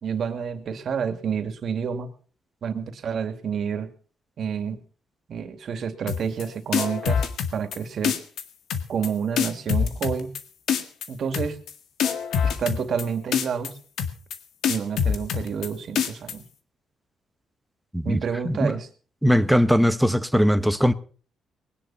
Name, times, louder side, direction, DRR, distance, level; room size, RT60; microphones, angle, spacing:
voice 1, 0.0-2.1 2.6-3.9 4.4-4.8 5.3-7.3 7.5-8.2 8.9-10.3 11.1-11.6 12.6-13.7 14.7-16.4 18.0-18.9, right 6 dB, 55° right, 2.5 m, -29 dB
sound 1, 6.1-6.4 6.7-7.8 8.0-8.4 8.7-9.1 9.4-10.4 10.7-11.1 11.3-11.7 12.0-13.0 13.3-13.7 14.0-14.4 14.6-15.7 16.0-16.3, left 7 dB, 75° left, 1.8 m, -24 dB
voice 2, 19.2-20.9, equal, ahead, 1.2 m, -20 dB
20.0 x 10.0 x 5.9 m
cardioid pair, 90°, 0 cm